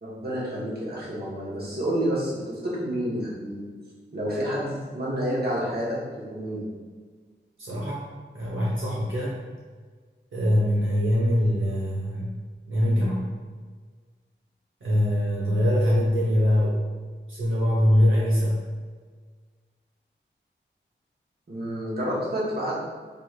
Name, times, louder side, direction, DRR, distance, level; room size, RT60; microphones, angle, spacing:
voice 1, 0.0-3.7 4.1-6.0 6.3-6.6 21.5-22.8, equal, 55° right, -7 dB, 1.3 m, -29 dB
voice 2, 7.6-8.0 8.3-9.4 10.3-12.4 12.7-13.3 14.8-16.9 17.3-18.6, equal, 85° right, -7 dB, 1.0 m, -23 dB
4.8 x 3.2 x 2.4 m, 1.5 s
wide cardioid pair, 70°, 20 cm